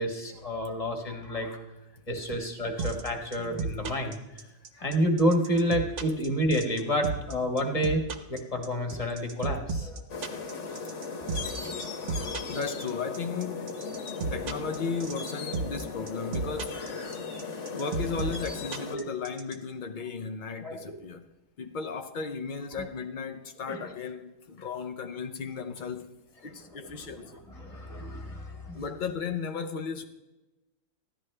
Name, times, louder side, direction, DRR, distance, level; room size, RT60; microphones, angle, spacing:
voice 1, 0.0-1.6 2.1-4.2 4.7-8.0 8.3-10.0 11.2-11.4 11.7-12.0 18.9-19.1 20.6-21.0 22.8-22.9 23.7-23.8 26.7-28.8, equal, 25° left, 1.4 m, -30 dB
sound 1, 2.8-19.6, right 4 dB, 55° right, 1.1 m, -33 dB
sound 2, 10.1-19.0, left 4 dB, 50° left, 1.3 m, -37 dB
voice 2, 12.5-13.7 14.3-17.2 17.7-21.2 21.6-27.4 28.7-30.1, left 5 dB, 75° left, 0.4 m, -35 dB
15.0 x 11.0 x 3.3 m
omnidirectional pair, 1.7 m